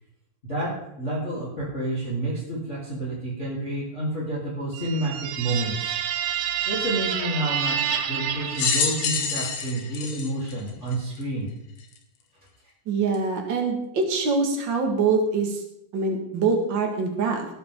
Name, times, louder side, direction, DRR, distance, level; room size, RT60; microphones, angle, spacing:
voice 1, 1.0-5.9 6.6-11.5, right 1 dB, 20° left, -6 dB, 3.0 m, -29 dB
sound 1, 4.7-9.5, right 8 dB, 85° right, 3.3 m, -29 dB
sound 2, 8.5-11.2 11.9-12.0 13.1-13.2, left 6 dB, 80° left, 4.0 m, -27 dB
voice 2, 12.8-15.6 15.9-17.5, right 4 dB, 60° right, 3 dB, 1.2 m, -24 dB
19.5 x 8.7 x 3.7 m, 0.80 s
omnidirectional pair, 5.1 m